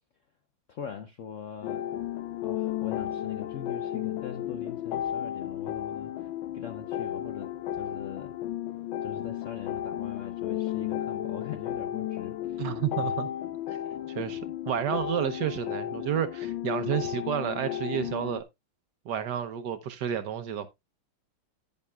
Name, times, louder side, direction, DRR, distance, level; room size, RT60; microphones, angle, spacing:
voice 1, 0.7-1.9 2.4-8.3 9.0-13.1, left 8 dB, 65° left, 0.7 m, -42 dB
sound 1, 1.6-18.4, left 11 dB, 80° left, 1.5 m, -33 dB
voice 2, 12.6-13.3 13.7-13.8 14.1-18.4 19.1-20.7, right 9 dB, 65° right, 1.2 m, -31 dB
10.5 x 9.5 x 2.3 m
omnidirectional pair, 2.2 m